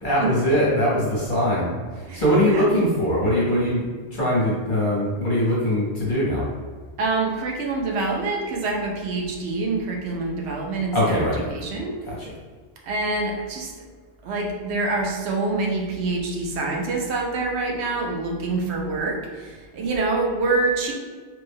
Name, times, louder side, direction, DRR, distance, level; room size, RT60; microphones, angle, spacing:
voice 1, 0.0-6.4 10.9-11.4 12.1-12.3, equal, 50° left, -6 dB, 0.9 m, -22 dB
voice 2, 2.1-2.7 7.0-12.0 12.8-13.7 14.2-20.9, right 3 dB, 85° right, 0 dB, 0.9 m, -26 dB
3.2 x 2.1 x 3.4 m, 1.5 s
omnidirectional pair, 1.1 m